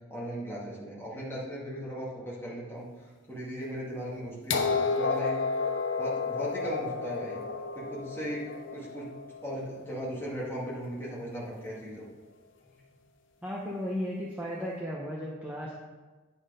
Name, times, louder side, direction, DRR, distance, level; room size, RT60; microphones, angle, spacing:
voice 1, 0.1-5.4 5.9-7.4 7.7-9.1 9.4-12.1, equal, 10° left, -7 dB, 2.0 m, -38 dB
sound 1, 4.5-10.4 11.5-11.6, left 4 dB, 65° left, 0.7 m, -32 dB
voice 2, 13.4-15.7, equal, 10° right, -4 dB, 0.7 m, -35 dB
9.6 x 4.3 x 5.1 m, 1.3 s
head